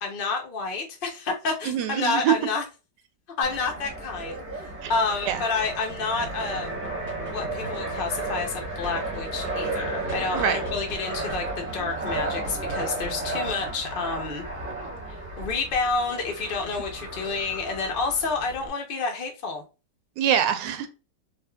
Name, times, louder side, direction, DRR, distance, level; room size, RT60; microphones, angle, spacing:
voice 1, 0.0-2.6 3.4-6.8 7.3-14.4 15.1-19.6, left 4 dB, 75° left, 0.5 m, -29 dB
voice 2, 1.7-2.3 4.8-4.9 5.3-5.4 10.3-10.6 20.2-20.9, right 10 dB, 85° right, 1.2 m, -24 dB
Fixed-wing aircraft airplane, 3.4-18.7, right 2 dB, 10° right, 0.6 m, -33 dB
sound 1, 4.9-11.0 11.3-13.7, right 1 dB, 15° left, 1.0 m, -42 dB
3.4 x 2.5 x 2.2 m
omnidirectional pair, 1.8 m